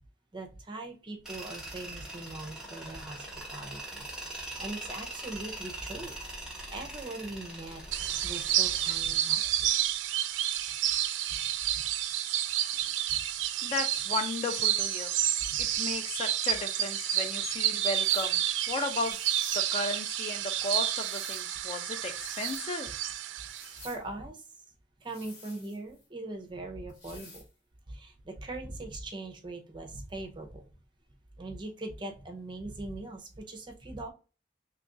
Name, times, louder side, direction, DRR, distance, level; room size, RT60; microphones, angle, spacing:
voice 1, 0.3-3.3 3.5-6.2 6.4-9.7 11.7-11.8 15.5-15.6 23.8-24.4 25.0-27.4 27.9-30.6 31.4-34.1, right 2 dB, 25° right, 3 dB, 0.5 m, -41 dB
Tools, 1.3-9.0, right 2 dB, 5° right, 0.9 m, -42 dB
sound 1, 7.9-23.9, right 12 dB, 85° right, 0.3 m, -30 dB
voice 2, 13.6-15.1 15.6-18.4 18.7-19.2 19.5-22.9, left 3 dB, 30° left, 7 dB, 0.4 m, -35 dB
sound 2, 17.8-18.4 19.0-19.7 20.6-21.5 22.0-22.7 23.4-24.0 25.0-26.1 26.9-27.5, left 3 dB, 65° left, 1.5 m, -51 dB
3.0 x 2.4 x 3.7 m, 0.34 s
head